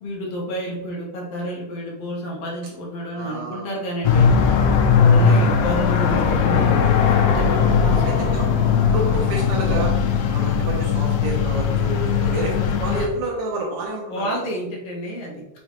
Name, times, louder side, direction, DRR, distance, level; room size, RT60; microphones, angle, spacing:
voice 1, 0.0-4.3 4.9-8.4 14.1-15.6, equal, 65° left, -2 dB, 1.6 m, -30 dB
voice 2, 3.1-3.9 4.8-5.1 8.0-8.4 8.9-9.9 10.3-14.5, right 2 dB, 75° right, -1 dB, 1.9 m, -29 dB
sound 1, 4.0-13.1, left 6 dB, 90° left, 1.5 m, -18 dB
5.5 x 3.1 x 3.0 m, 0.90 s
omnidirectional pair, 3.7 m